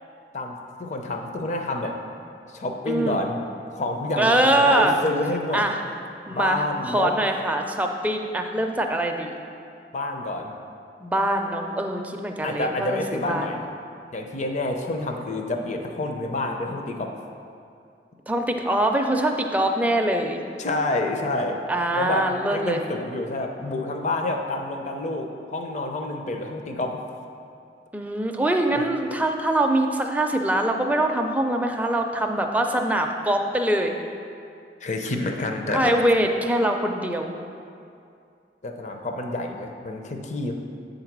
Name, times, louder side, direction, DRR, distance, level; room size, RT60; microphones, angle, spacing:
voice 1, 0.3-2.0 2.5-3.4 3.7-5.7 6.3-7.1 9.9-10.5 12.4-13.6 14.1-17.1 19.6-19.7 20.6-21.6 21.9-27.0 28.7-28.8 34.8-35.9 38.6-40.5, left 2 dB, 40° left, 3 dB, 0.6 m, -28 dB
voice 2, 2.9-3.2 4.2-5.0 5.5-5.8 6.3-9.4 11.0-13.5 18.3-20.4 21.7-22.8 27.9-33.9 35.7-37.3, right 1 dB, 10° right, 3 dB, 0.4 m, -23 dB
7.9 x 4.0 x 5.9 m, 2.5 s
head